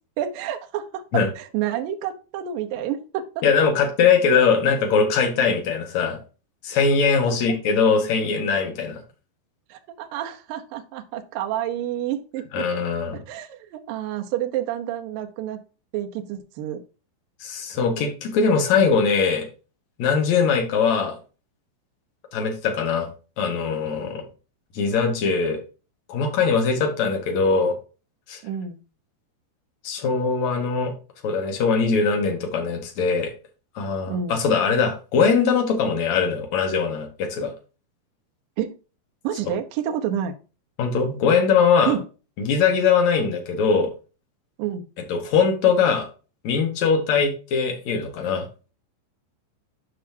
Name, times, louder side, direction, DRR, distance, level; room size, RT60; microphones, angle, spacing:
voice 1, 0.2-3.4 7.3-7.4 9.7-12.8 13.3-15.6 15.9-16.8 28.4-28.8 34.1-34.4 38.6-38.8 39.2-40.3 41.9-42.0 44.6-44.8, right 10 dB, 75° right, 5 dB, 2.0 m, -29 dB
voice 2, 3.4-6.2 6.6-9.0 12.5-13.2 17.4-19.5 20.0-21.2 22.3-23.1 23.4-24.3 24.7-25.6 26.1-27.7 28.3-28.4 29.8-30.9 31.2-33.3 33.8-37.5 40.8-41.9 42.4-43.9 45.1-46.1 46.4-48.5, left 5 dB, 55° left, 3 dB, 2.1 m, -21 dB
9.9 x 5.6 x 2.8 m, 0.33 s
omnidirectional pair, 5.4 m